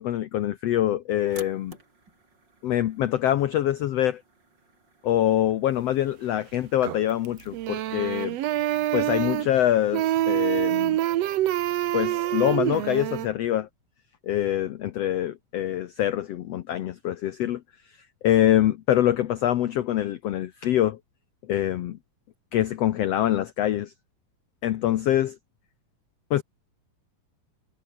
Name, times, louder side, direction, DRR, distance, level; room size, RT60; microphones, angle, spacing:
voice 1, 0.0-1.7 2.6-4.2 5.0-8.4 8.9-11.0 11.9-13.7 14.3-17.6 18.2-21.0 21.5-22.0 22.5-23.9 24.6-25.4 26.3-26.4, left 12 dB, 85° left, 1.4 m, -24 dB
sound 1, 1.2-10.0, right 3 dB, 30° right, 5.0 m, -54 dB
sound 2, 6.8-7.3 7.5-9.6 9.9-13.3, right 13 dB, 75° right, 1.5 m, -26 dB
omnidirectional pair, 4.1 m